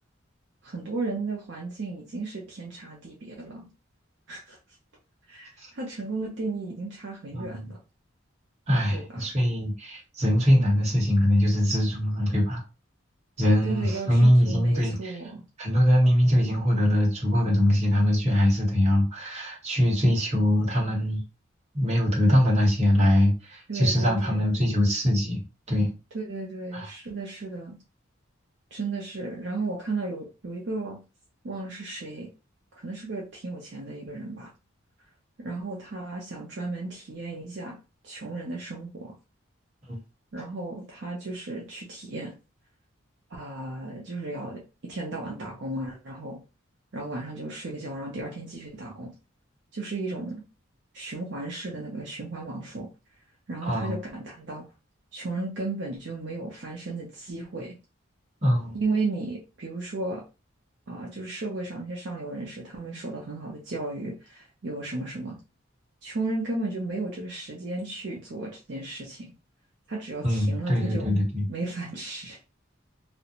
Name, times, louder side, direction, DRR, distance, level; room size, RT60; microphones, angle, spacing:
voice 1, 0.6-3.7 4.3-4.6 5.3-7.8 8.9-9.3 13.6-15.4 23.7-24.4 26.1-27.8 28.7-31.0 31.4-32.3 32.8-34.5 35.4-37.8 38.0-39.1 40.3-42.3 43.3-46.4 46.9-49.1 49.7-50.4 50.9-52.9 53.5-54.6 55.1-57.8 58.7-60.2 60.9-65.4 66.0-69.3 69.9-71.1 71.5-72.4, right 3 dB, 55° right, -2 dB, 0.5 m, -34 dB
voice 2, 7.3-7.7 8.7-12.6 13.4-15.2 15.6-21.2 21.7-25.4 25.7-25.9 26.7-26.9 39.9-40.0 53.7-54.0 58.4-58.8 70.2-71.4, equal, 30° right, -3 dB, 1.0 m, -22 dB
2.4 x 2.1 x 2.8 m, 0.30 s
head